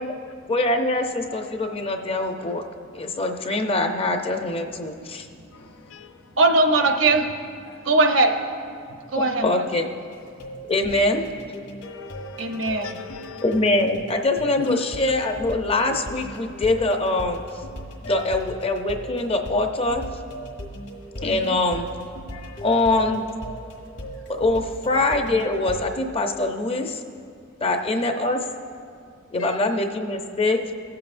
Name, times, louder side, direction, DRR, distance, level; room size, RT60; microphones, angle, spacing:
voice 1, 0.5-2.6 2.9-5.3 9.4-9.8 10.7-11.2 13.4-17.4 18.1-20.0 21.2-21.9 22.6-23.2 24.3-27.0 27.6-28.4 29.3-30.6, left 2 dB, 30° left, 5 dB, 0.6 m, -23 dB
voice 2, 5.5-6.3 7.7-7.9 11.8-13.6 14.6-15.1 18.1-18.4 21.2-21.3 22.3-22.7 29.4-29.8, left 4 dB, 80° left, 8 dB, 0.5 m, -37 dB
voice 3, 6.4-7.3 7.8-8.3 9.1-9.8 12.4-13.0 21.4-21.6, right 2 dB, 65° right, 4 dB, 0.8 m, -20 dB
sound 1, 10.1-25.8, right 1 dB, 65° left, 1.8 m, -38 dB
21.0 x 7.7 x 2.5 m, 2.3 s
head